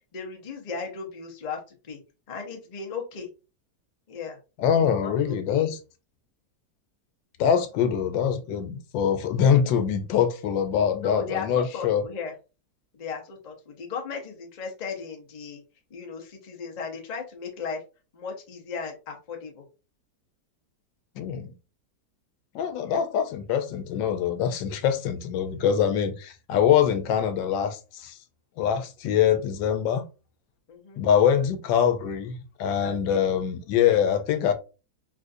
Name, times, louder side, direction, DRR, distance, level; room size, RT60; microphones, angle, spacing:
voice 1, 0.1-1.6 1.9-2.0 2.3-3.3 4.1-4.4 4.8-5.7 11.0-12.3 12.9-15.6 15.9-17.8 18.1-19.7 22.8-23.0 30.7-31.0 32.8-33.3, left 5 dB, 45° left, 0.5 m, -36 dB
voice 2, 4.6-5.8 7.4-12.0 21.2-21.5 22.5-28.2 28.6-30.1 31.0-34.5, left 8 dB, 85° left, 1.3 m, -24 dB
3.7 x 2.5 x 2.5 m
omnidirectional pair, 2.0 m